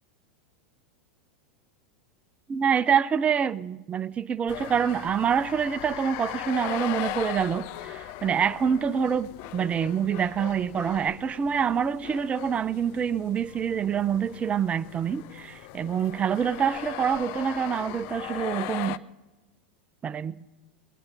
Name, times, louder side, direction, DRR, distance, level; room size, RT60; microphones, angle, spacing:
voice 1, 2.5-19.0 20.0-20.3, right 7 dB, 25° right, 0.6 m, -26 dB
sound 1, 4.5-19.0, left 13 dB, 50° left, 0.5 m, -39 dB
20.5 x 9.7 x 5.3 m
figure-of-eight pair, 90°, 5 cm